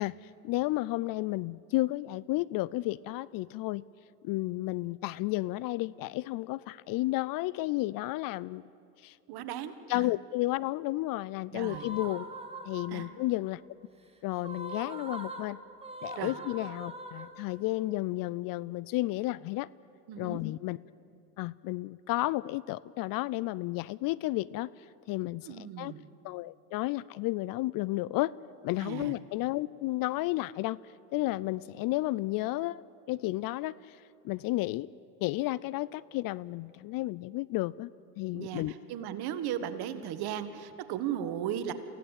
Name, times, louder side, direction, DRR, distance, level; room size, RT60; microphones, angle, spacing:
voice 1, 0.0-3.8 4.2-8.6 9.0-9.2 9.9-12.3 12.7-13.6 14.2-15.6 16.0-19.7 20.2-20.8 21.4-24.7 25.1-25.9 26.2-28.3 28.6-30.8 31.1-32.8 33.1-34.0 34.2-34.9 35.2-37.9 38.2-38.7, left 18 dB, 50° left, 21 dB, 0.5 m, -32 dB
voice 2, 9.3-10.1 11.5-11.9 12.9-13.1 16.2-16.3 20.1-20.4 25.4-26.0 28.8-29.1 38.3-41.7, right 10 dB, 55° right, 10 dB, 1.7 m, -36 dB
sound 1, 11.6-13.3 14.4-17.8, right 1 dB, 15° right, 2.3 m, -42 dB
24.0 x 16.0 x 8.3 m, 2.6 s
hypercardioid pair, 85°, 45 cm